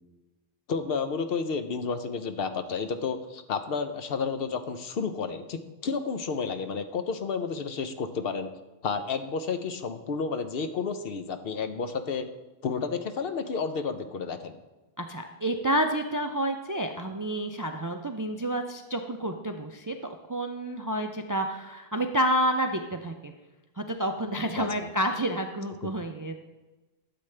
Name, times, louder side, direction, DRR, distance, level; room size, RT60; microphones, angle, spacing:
voice 1, 0.7-8.5 8.8-12.3 12.6-14.6 24.6-24.9, left 5 dB, 70° left, 9 dB, 0.9 m, -31 dB
voice 2, 15.0-23.3 23.8-26.4, right 1 dB, 35° right, 5 dB, 0.3 m, -29 dB
12.0 x 7.7 x 3.3 m, 1.1 s
omnidirectional pair, 1.0 m